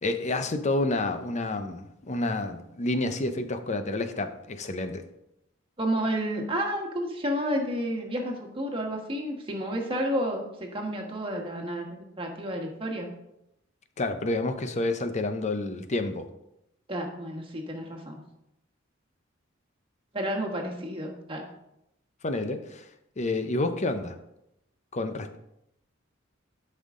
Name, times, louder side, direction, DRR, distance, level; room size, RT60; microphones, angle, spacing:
voice 1, 0.0-5.0 14.0-16.3 22.2-22.9 23.2-24.2 24.9-25.4, left 2 dB, 35° left, 8 dB, 0.7 m, -29 dB
voice 2, 5.8-13.1 16.9-18.2 20.1-21.5, equal, 25° right, 1 dB, 1.5 m, -31 dB
12.0 x 5.6 x 3.7 m, 0.84 s
head